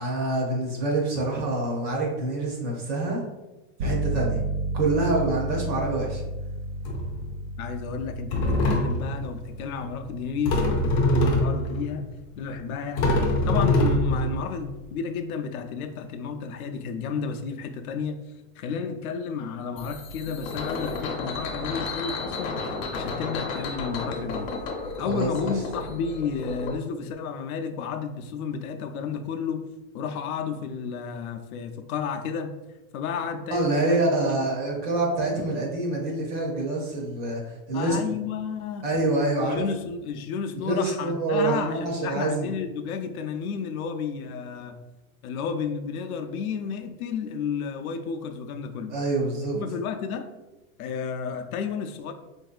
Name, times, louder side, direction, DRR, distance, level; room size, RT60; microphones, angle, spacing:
voice 1, 0.0-3.2 3.8-4.4 4.7-6.2 25.1-25.5 33.5-38.0 38.8-39.6 40.5-42.5 48.9-49.6, right 2 dB, 25° right, -2 dB, 0.5 m, -26 dB
sound 1, 3.8-14.3, right 1 dB, 70° right, 0.6 m, -34 dB
sound 2, 5.7-5.9 6.8-7.3 8.0-8.1 8.3-9.2 10.4-11.9 12.5-12.6 13.0-14.8, left 1 dB, 30° left, 0.4 m, -23 dB
voice 2, 7.6-12.1 12.4-13.2 13.5-18.2 18.6-24.5 25.0-29.7 29.9-32.5 32.9-34.0 34.3-34.4 37.7-38.9 39.4-44.8 45.2-48.9 49.5-50.3 50.8-52.1, left 6 dB, 90° left, 6 dB, 0.5 m, -32 dB
sound 3, 19.8-26.7, left 3 dB, 65° left, 0.8 m, -33 dB
3.5 x 2.6 x 2.3 m, 1.0 s
supercardioid pair, 150°, 42 cm